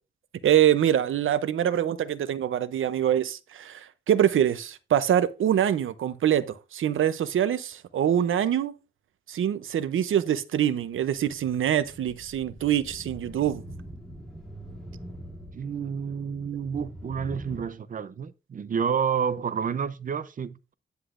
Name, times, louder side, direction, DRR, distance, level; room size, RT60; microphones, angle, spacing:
voice 1, 0.4-8.7 9.3-13.6, right 10 dB, 85° right, 0.7 m, -24 dB
sound 1, 10.9-17.6, right 1 dB, ahead, 2.5 m, -44 dB
voice 2, 15.5-20.7, right 7 dB, 45° right, 0.5 m, -30 dB
9.7 x 7.9 x 2.5 m
wide cardioid pair, 145°, 20 cm